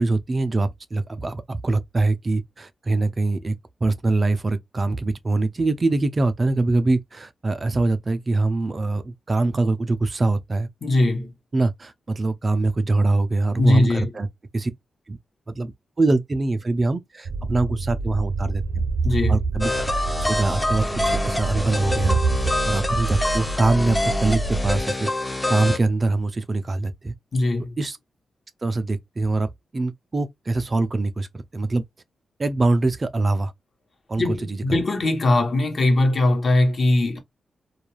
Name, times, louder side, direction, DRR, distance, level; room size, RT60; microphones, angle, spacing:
voice 1, 0.0-3.6 3.8-10.7 11.5-14.3 14.5-14.7 15.1-15.2 15.5-18.9 19.3-19.7 20.2-25.1 25.5-27.1 27.8-28.0 28.6-31.8 32.4-33.5 34.1-34.6, right 2 dB, 35° right, 0.4 m, -23 dB
voice 2, 10.8-11.3 13.6-14.1 19.0-19.4 27.3-27.8 34.2-37.2, left 2 dB, 50° left, 0.9 m, -20 dB
sound 1, 17.3-24.8, right 3 dB, 75° right, 0.6 m, -27 dB
sound 2, 19.6-25.8, left 2 dB, 15° left, 0.5 m, -26 dB
2.3 x 2.2 x 3.0 m
cardioid pair, 70°, 0 cm